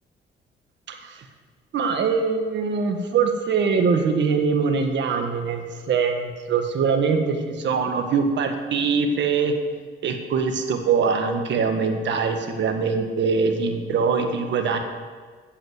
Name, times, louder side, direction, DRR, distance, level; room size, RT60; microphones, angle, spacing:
voice 1, 0.9-1.2 1.7-9.5 10.0-14.8, right 5 dB, 65° right, 5 dB, 1.5 m, -23 dB
8.9 x 7.4 x 7.8 m, 1.5 s
cardioid pair, 90°, 20 cm